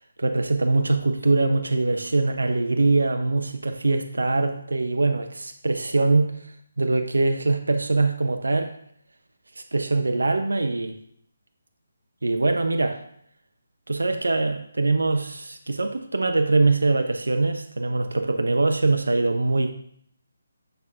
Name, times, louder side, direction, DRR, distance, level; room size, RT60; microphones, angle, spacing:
voice 1, 0.2-6.3 6.8-8.7 9.6-11.0 12.2-13.0 13.9-19.7, right 3 dB, 75° right, 6 dB, 0.7 m, -23 dB
6.8 x 6.5 x 2.7 m, 0.65 s
figure-of-eight pair, 150°, 0 cm